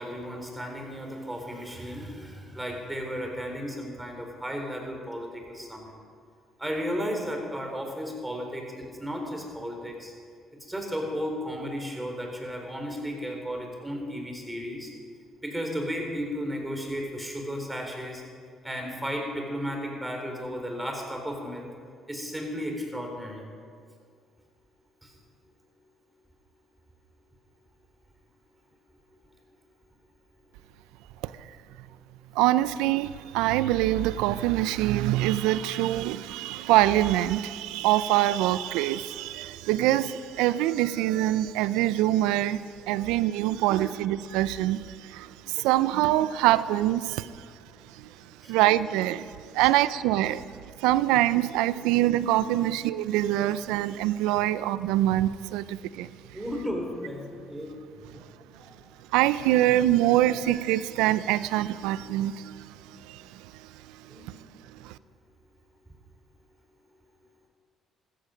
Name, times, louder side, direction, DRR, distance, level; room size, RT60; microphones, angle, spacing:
voice 1, 0.0-5.9 6.6-10.1 10.6-14.9 15.4-18.2 18.6-21.7 22.1-23.4 25.0-25.1 43.0-43.1 43.8-43.9 47.9-48.0 48.4-48.5 49.5-49.7 51.8-51.9 52.5-52.6 56.3-57.7 58.1-58.3 58.5-58.7 62.7-63.0 64.1-64.3, equal, 10° right, 2 dB, 4.0 m, -34 dB
voice 2, 32.4-47.3 48.5-50.4 50.8-56.1 59.1-62.6 63.1-63.2 64.8-64.9, right 14 dB, 85° right, 16 dB, 0.4 m, -24 dB
15.5 x 14.0 x 5.1 m, 2.1 s
supercardioid pair, 70°, 0 cm